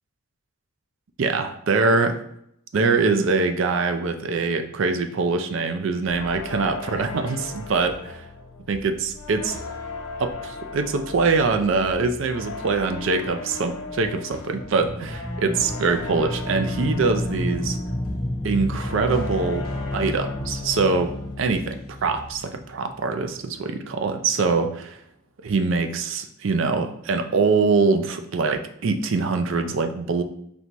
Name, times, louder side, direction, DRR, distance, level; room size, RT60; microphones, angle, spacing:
voice 1, 1.2-2.2 2.7-8.2 8.7-9.6 10.2-17.8 18.4-25.0 25.4-30.2, right 4 dB, 60° right, 7 dB, 0.4 m, -23 dB
sound 1, 6.1-21.8 22.1-22.5, left 3 dB, 80° left, 0.8 m, -38 dB
sound 2, 14.6-23.3, left 1 dB, 10° left, 0.3 m, -31 dB
4.2 x 3.3 x 2.9 m, 0.73 s
head